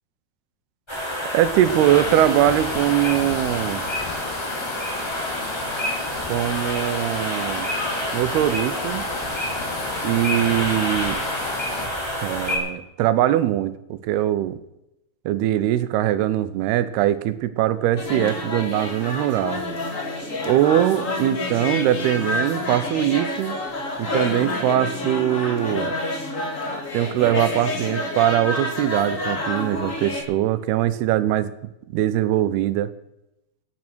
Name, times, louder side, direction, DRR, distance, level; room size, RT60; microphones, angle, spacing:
sound 1, 0.9-12.6, equal, 5° left, 4.4 m, -28 dB
voice 1, 1.3-3.8 6.3-7.7 8.1-9.0 10.0-11.2 12.2-14.6 15.3-19.6 20.5-23.5 24.0-25.9 26.9-31.5 31.9-32.9, right 12 dB, 80° right, 13 dB, 2.8 m, -21 dB
sound 2, 1.6-11.9, left 7 dB, 75° left, 3.1 m, -35 dB
sound 3, 18.0-30.2, left 2 dB, 25° left, 2.0 m, -28 dB
17.0 x 9.8 x 6.2 m, 0.88 s
omnidirectional pair, 4.6 m